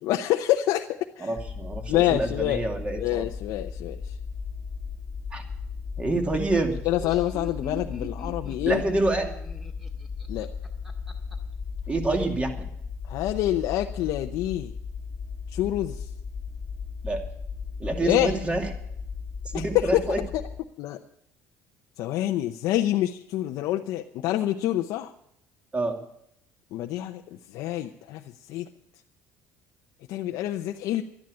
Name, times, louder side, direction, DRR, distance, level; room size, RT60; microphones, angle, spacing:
voice 1, 0.0-0.9 1.2-1.3 1.9-2.6 3.0-4.1 6.8-8.8 10.3-10.5 13.1-14.7 15.5-16.1 18.0-18.3 19.5-20.4 20.8-21.0 22.0-25.1 26.7-27.2 27.5-28.2 28.5-28.7 30.1-31.0, left 13 dB, 70° left, 4 dB, 0.7 m, -26 dB
voice 2, 1.2-3.2 5.3-5.4 6.0-6.8 8.6-9.3 11.9-12.7 17.0-17.2 17.8-18.7 19.5-20.2 25.7-26.0, right 2 dB, 20° right, 3 dB, 2.5 m, -27 dB
sound 1, 1.4-20.6, left 5 dB, 15° left, 1.8 m, -36 dB
Laughter, 6.8-11.3, right 1 dB, 5° right, 1.9 m, -42 dB
12.5 x 10.5 x 8.4 m, 0.73 s
cardioid pair, 125°, 6 cm